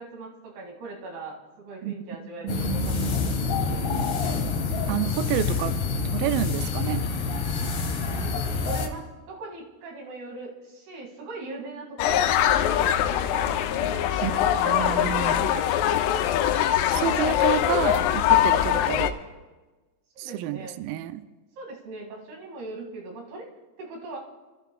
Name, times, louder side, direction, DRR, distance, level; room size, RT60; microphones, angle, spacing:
voice 1, 0.0-3.9 8.1-15.7 18.7-19.1 20.2-20.8 21.6-23.5 23.8-24.2, right 2 dB, 70° right, 0 dB, 4.3 m, -40 dB
voice 2, 2.4-3.4 4.9-5.8 6.1-7.0 14.2-15.5 16.9-19.2 20.2-21.2, right 12 dB, 90° right, 10 dB, 2.1 m, -30 dB
sound 1, 2.5-8.9, left 4 dB, 70° left, 1.3 m, -27 dB
sound 2, 12.0-19.1, left 11 dB, 90° left, 2.8 m, -22 dB
28.0 x 14.0 x 2.3 m, 1.2 s
omnidirectional pair, 4.7 m